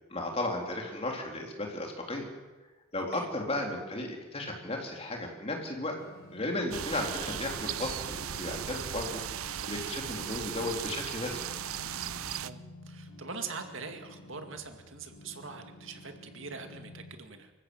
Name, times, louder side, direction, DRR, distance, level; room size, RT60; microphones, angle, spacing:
voice 1, 0.1-2.3 2.9-6.0 6.3-11.4, left 2 dB, 30° left, 1 dB, 3.6 m, -35 dB
sound 1, 6.0-17.1, left 1 dB, 90° left, 4.4 m, -52 dB
sound 2, 6.7-12.5, right 9 dB, 80° right, 0.7 m, -37 dB
voice 2, 12.2-17.5, right 4 dB, 60° right, 6 dB, 2.2 m, -43 dB
25.5 x 15.0 x 8.0 m, 1.2 s
head